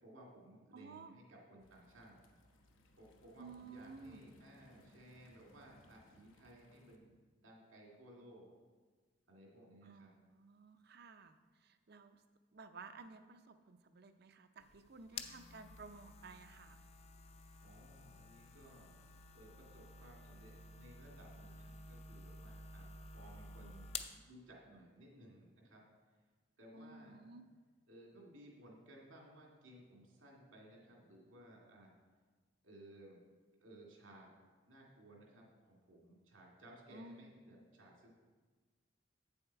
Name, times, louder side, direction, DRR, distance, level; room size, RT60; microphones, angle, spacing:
voice 1, 0.0-2.2 3.0-7.1 7.4-8.5 9.3-10.1 17.6-18.9 19.3-25.8 26.6-27.3 27.9-31.9 32.6-33.2 33.6-34.4 34.7-38.1, right 1 dB, 80° right, -2 dB, 2.2 m, -59 dB
voice 2, 0.7-1.1 3.4-4.2 9.8-12.2 12.5-16.8 26.7-27.4 36.9-37.4, right 4 dB, 55° right, 10 dB, 0.5 m, -55 dB
sound 1, 1.6-7.0, left 1 dB, 85° left, 1.0 m, -67 dB
sound 2, 14.6-24.2, left 4 dB, 30° left, 0.5 m, -52 dB
8.7 x 7.1 x 4.6 m, 1.4 s
head